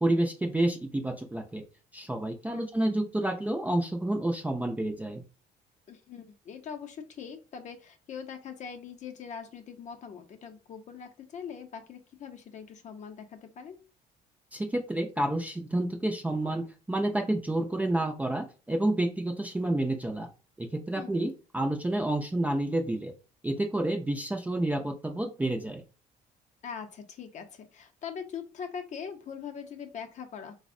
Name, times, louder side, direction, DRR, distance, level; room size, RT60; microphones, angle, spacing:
voice 1, 0.0-1.6 1.9-5.2 14.5-20.3 20.6-23.1 23.4-25.8, right 1 dB, 10° right, 3 dB, 0.4 m, -29 dB
voice 2, 5.9-13.8 20.9-21.3 26.6-30.5, left 7 dB, 45° left, 6 dB, 0.6 m, -42 dB
3.4 x 2.1 x 2.5 m, 0.33 s
cardioid pair, 110°, 17 cm